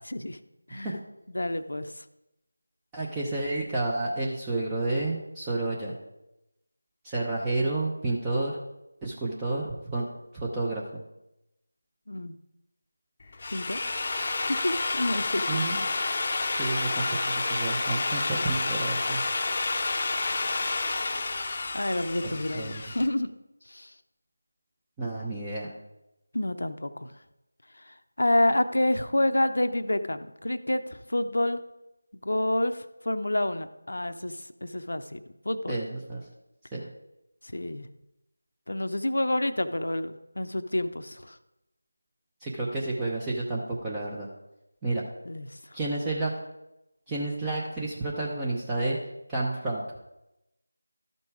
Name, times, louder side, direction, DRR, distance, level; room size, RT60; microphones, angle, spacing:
voice 1, 0.7-1.0 1.3-2.0 12.1-12.4 13.5-13.8 14.6-15.8 21.7-23.3 23.7-23.9 26.3-27.1 27.9-31.6 32.2-35.8 37.4-37.9 38.7-41.4 45.2-45.8, left 1 dB, 65° left, 10 dB, 0.7 m, -29 dB
voice 2, 2.9-6.0 7.0-8.6 9.0-10.1 10.3-11.0 15.5-15.8 16.4-19.2 22.2-22.8 25.0-25.7 35.7-36.2 36.7-36.8 42.4-44.3 44.8-45.0 45.7-46.3 47.1-49.0 49.3-49.8, right 2 dB, 10° right, -5 dB, 0.8 m, -30 dB
Drill, 13.2-23.1, left 3 dB, 30° left, 0.7 m, -29 dB
12.5 x 5.4 x 4.8 m, 0.91 s
figure-of-eight pair, 165°, 0 cm